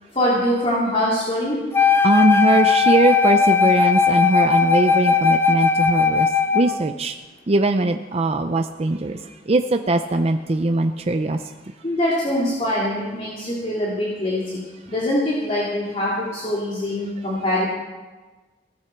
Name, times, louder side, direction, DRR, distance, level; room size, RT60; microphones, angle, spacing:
voice 1, 0.1-1.6 11.8-14.6 14.9-17.7, left 1 dB, 35° left, -6 dB, 3.0 m, -23 dB
Wind instrument woodwind instrument, 1.7-6.8, left 5 dB, 15° left, 0.7 m, -18 dB
voice 2, 2.0-7.2 7.5-11.5, right 2 dB, 35° right, 7 dB, 0.6 m, -21 dB
17.0 x 14.5 x 4.6 m, 1.2 s
head